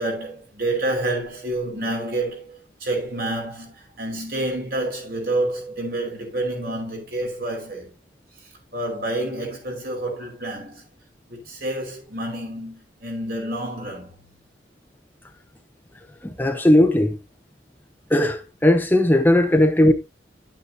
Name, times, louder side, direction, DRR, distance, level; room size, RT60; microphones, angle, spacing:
voice 1, 0.0-8.0 8.7-10.8 11.3-14.2 16.2-16.4 19.5-19.6, right 1 dB, 55° right, 5.3 m, -28 dB
voice 2, 16.2-17.2 18.1-19.9, left 1 dB, 10° left, 0.8 m, -17 dB
11.0 x 9.0 x 2.8 m
head